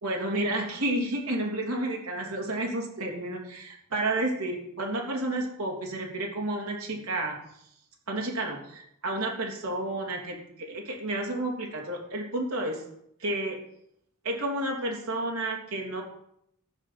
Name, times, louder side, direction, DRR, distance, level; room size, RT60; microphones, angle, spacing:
voice 1, 0.0-7.4 8.1-12.8 13.2-13.6 14.2-16.0, right 1 dB, 70° right, -1 dB, 3.4 m, -31 dB
14.0 x 6.3 x 7.5 m, 0.73 s
head